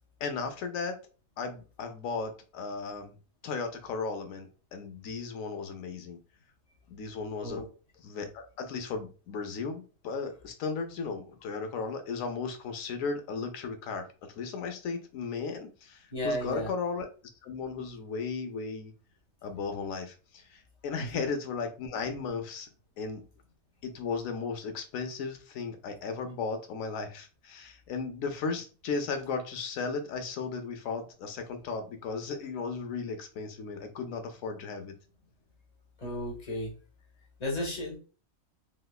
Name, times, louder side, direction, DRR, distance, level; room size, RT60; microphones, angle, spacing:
voice 1, 0.2-1.0 1.4-3.1 3.4-6.2 6.9-7.6 8.0-17.1 17.4-18.9 19.4-22.7 23.0-23.2 23.8-35.0, left 4 dB, 75° left, 7 dB, 1.0 m, -35 dB
voice 2, 16.1-16.7 36.0-36.7 37.4-38.0, left 1 dB, 35° left, 0 dB, 0.9 m, -33 dB
3.1 x 2.8 x 2.3 m, 0.36 s
omnidirectional pair, 1.5 m